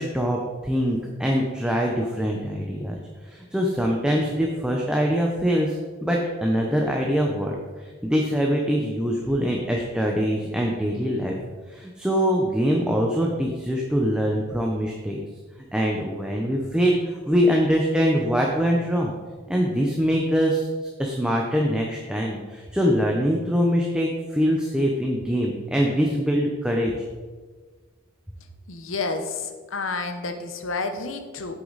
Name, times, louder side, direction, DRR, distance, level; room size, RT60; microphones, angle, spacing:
voice 1, 0.0-2.9 3.3-5.8 6.0-11.4 11.7-15.2 15.7-19.1 19.5-20.7 21.0-26.9, equal, 5° right, -1 dB, 0.7 m, -23 dB
voice 2, 28.7-31.6, left 3 dB, 75° left, 8 dB, 1.0 m, -30 dB
8.2 x 8.2 x 4.1 m, 1.4 s
head